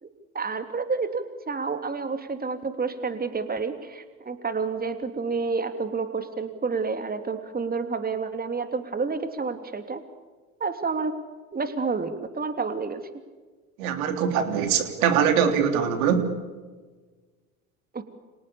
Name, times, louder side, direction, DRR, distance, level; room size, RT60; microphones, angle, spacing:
voice 1, 0.3-10.0 10.6-11.1 11.5-13.0 17.9-18.0, right 4 dB, 20° right, 8 dB, 3.1 m, -29 dB
voice 2, 13.8-16.3, right 7 dB, 70° right, 7 dB, 3.5 m, -22 dB
30.0 x 26.5 x 7.1 m, 1.4 s
hypercardioid pair, 70°, 43 cm